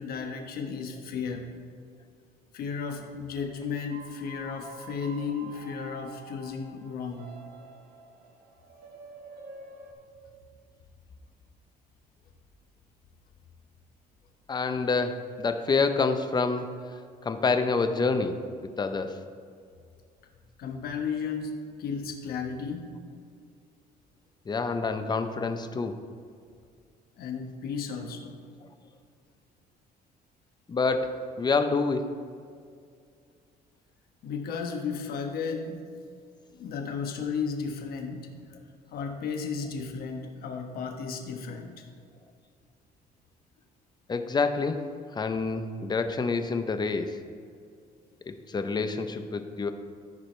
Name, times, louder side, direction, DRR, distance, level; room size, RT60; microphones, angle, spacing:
voice 1, 0.0-1.4 2.5-7.3 20.6-21.5 21.8-22.8 27.2-28.4 34.2-35.8 36.6-38.3 38.9-41.7, left 5 dB, 65° left, 3 dB, 1.2 m, -34 dB
sound 1, 3.7-9.9, right 3 dB, 65° right, 1.1 m, -48 dB
voice 2, 14.5-16.7 17.2-19.2 24.5-25.9 30.7-32.0 44.1-44.8 45.1-47.1 48.3-49.7, left 4 dB, 25° left, 8 dB, 0.6 m, -27 dB
14.5 x 4.9 x 3.3 m, 2.2 s
cardioid pair, 110°, 17 cm